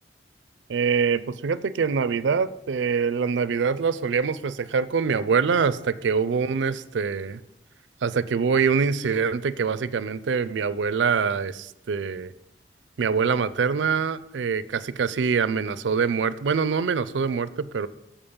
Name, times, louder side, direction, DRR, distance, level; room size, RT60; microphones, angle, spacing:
voice 1, 0.7-7.4 8.0-12.3 13.0-17.9, right 5 dB, 85° right, 16 dB, 0.4 m, -24 dB
7.2 x 5.2 x 7.1 m, 0.86 s
head